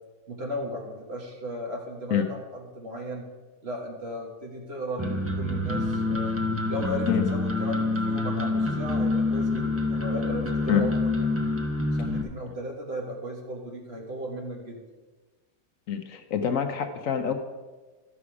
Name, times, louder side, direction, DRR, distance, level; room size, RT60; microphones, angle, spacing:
voice 1, 0.3-3.3 3.6-6.3 6.7-11.6 12.0-14.8, equal, 40° right, 0 dB, 1.7 m, -36 dB
sound 1, 5.0-12.2, left 2 dB, 15° right, 0.4 m, -27 dB
voice 2, 15.9-17.3, left 8 dB, 65° left, 7 dB, 1.0 m, -25 dB
12.5 x 6.1 x 4.8 m, 1.3 s
omnidirectional pair, 1.7 m